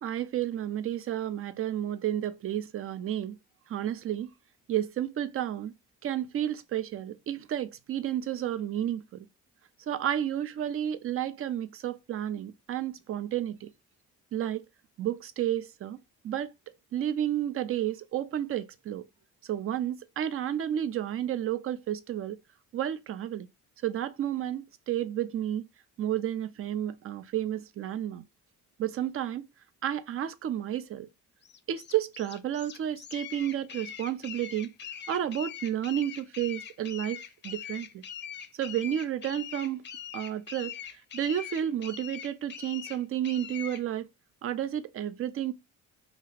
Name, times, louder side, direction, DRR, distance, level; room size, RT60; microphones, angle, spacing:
voice 1, 0.0-3.4 3.7-4.3 4.7-5.7 6.0-9.3 9.9-13.7 14.3-14.6 15.0-16.0 16.2-16.5 16.9-19.0 19.4-22.4 22.7-23.5 23.8-25.6 26.0-28.2 28.8-29.4 29.8-31.1 31.7-34.7 35.1-37.2 37.4-38.1 38.5-39.8 40.1-40.7 41.1-44.1 44.4-45.5, right 11 dB, 45° right, 0.4 m, -31 dB
sound 1, 31.4-43.8, left 8 dB, 35° left, 0.5 m, -42 dB
2.8 x 2.4 x 3.2 m
cardioid pair, 90°, 30 cm